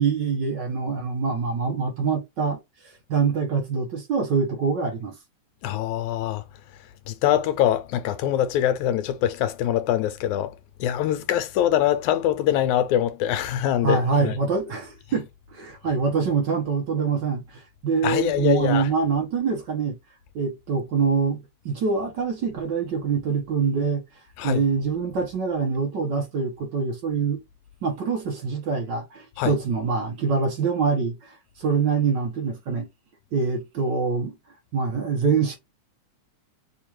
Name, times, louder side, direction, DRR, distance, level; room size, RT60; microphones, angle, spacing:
voice 1, 0.0-2.6 2.8-5.2 13.8-20.0 20.3-24.0 24.4-27.4 27.8-32.9 33.3-34.3 34.7-35.6, right 5 dB, 85° right, 0.9 m, -25 dB
voice 2, 5.6-6.4 7.1-10.5 10.8-14.3 18.0-18.9 24.4-24.6 29.4-29.5, left 11 dB, 80° left, 1.9 m, -23 dB
6.9 x 2.4 x 2.9 m
omnidirectional pair, 3.5 m